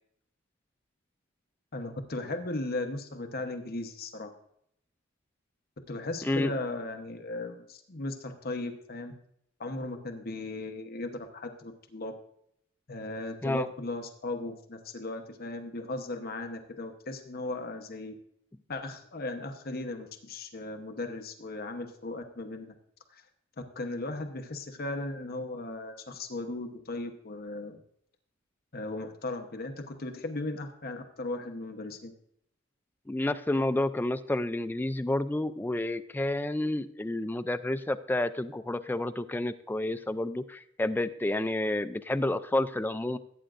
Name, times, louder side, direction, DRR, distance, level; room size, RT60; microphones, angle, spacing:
voice 1, 1.7-4.3 5.9-9.1 9.6-12.1 12.9-18.1 18.7-22.7 23.1-23.2 23.7-27.8 28.7-29.7 30.0-32.1, left 2 dB, 50° left, 6 dB, 0.9 m, -37 dB
voice 2, 6.2-6.5 13.4-13.7 33.1-43.2, left 1 dB, 10° left, 11 dB, 0.3 m, -30 dB
16.5 x 8.8 x 2.5 m, 0.71 s
head